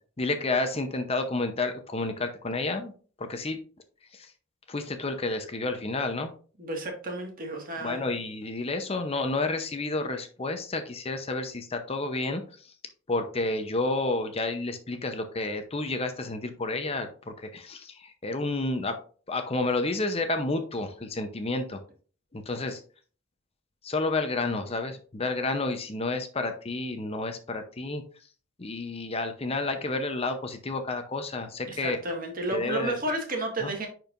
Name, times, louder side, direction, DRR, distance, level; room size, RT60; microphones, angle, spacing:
voice 1, 0.2-2.9 3.2-3.6 4.1-4.3 4.7-6.3 7.8-12.7 13.1-19.0 19.3-21.8 22.3-22.8 23.8-28.0 28.6-32.0 32.5-33.0 33.6-33.7, left 2 dB, 30° left, 7 dB, 0.7 m, -30 dB
voice 2, 6.6-8.0 31.7-33.9, right 1 dB, 45° right, 2 dB, 1.8 m, -32 dB
10.5 x 4.6 x 2.5 m, 0.40 s
head